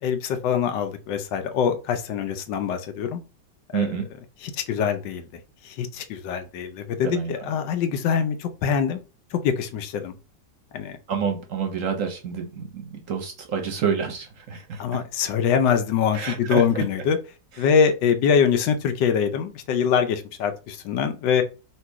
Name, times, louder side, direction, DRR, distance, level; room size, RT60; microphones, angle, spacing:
voice 1, 0.0-3.2 3.7-4.0 4.4-5.3 5.6-9.0 9.3-10.1 10.7-11.0 14.8-17.2 17.6-21.4, left 7 dB, 85° left, 1.4 m, -24 dB
voice 2, 3.7-4.0 7.0-7.3 11.1-14.8 16.1-16.8, right 6 dB, 60° right, 0.9 m, -28 dB
3.2 x 3.0 x 4.5 m
omnidirectional pair, 1.9 m